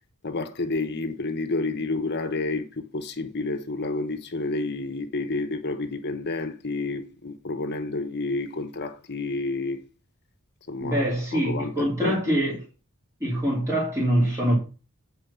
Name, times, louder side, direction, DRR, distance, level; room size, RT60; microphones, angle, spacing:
voice 1, 0.2-9.8 10.7-11.0 11.3-12.4, left 3 dB, 50° left, 1.1 m, -30 dB
voice 2, 10.8-12.6 13.2-14.6, right 1 dB, 15° right, 3.0 m, -24 dB
8.9 x 4.5 x 6.9 m
head